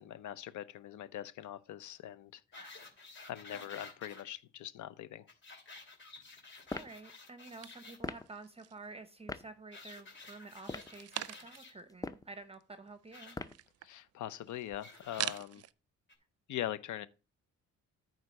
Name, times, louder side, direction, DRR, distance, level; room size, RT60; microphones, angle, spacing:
voice 1, 0.0-2.4 3.3-5.3 13.8-15.6 16.5-17.1, left 12 dB, 75° left, 0.7 m, -42 dB
sound 1, 2.5-4.2 5.3-8.0 9.7-11.7 13.1-13.4 14.8-15.4 16.1-16.2, left 3 dB, 40° left, 2.8 m, -52 dB
voice 2, 2.6-2.9 6.7-13.4, right 3 dB, 20° right, 0.9 m, -50 dB
sound 2, 6.7-7.0 8.0-8.3 9.3-9.5 10.6-11.0 11.9-12.3 13.3-13.7, left 2 dB, 10° left, 0.5 m, -40 dB
sound 3, 7.6-8.9 9.3-10.0 10.5-11.8 12.1-12.2 12.4-15.7, right 13 dB, 55° right, 0.5 m, -44 dB
8.9 x 3.9 x 6.5 m
cardioid pair, 90°, 30 cm